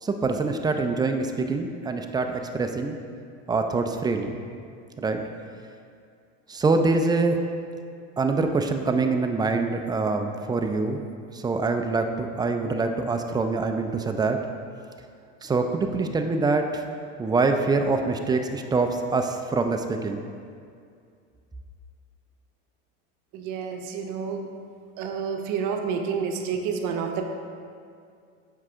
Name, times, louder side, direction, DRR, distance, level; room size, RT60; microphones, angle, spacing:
voice 1, 0.0-3.0 3.5-4.4 5.0-5.2 6.5-7.4 8.2-11.0 11.3-14.4 15.4-16.8 17.2-20.2, right 3 dB, 10° right, 5 dB, 0.4 m, -25 dB
voice 2, 23.3-24.4 25.0-27.3, right 6 dB, 55° right, 4 dB, 0.8 m, -29 dB
7.5 x 5.6 x 3.6 m, 2.3 s
supercardioid pair, 110°, 35 cm